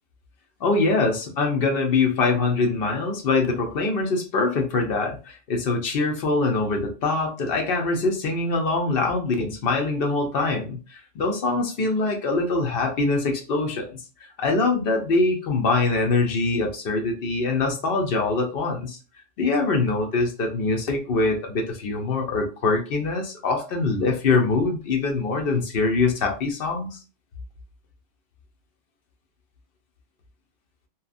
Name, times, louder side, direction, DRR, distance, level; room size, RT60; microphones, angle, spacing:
voice 1, 0.6-14.0 14.4-19.0 19.4-27.0, left 3 dB, 55° left, 2 dB, 0.8 m, -23 dB
2.8 x 2.3 x 2.4 m, 0.34 s
omnidirectional pair, 1.3 m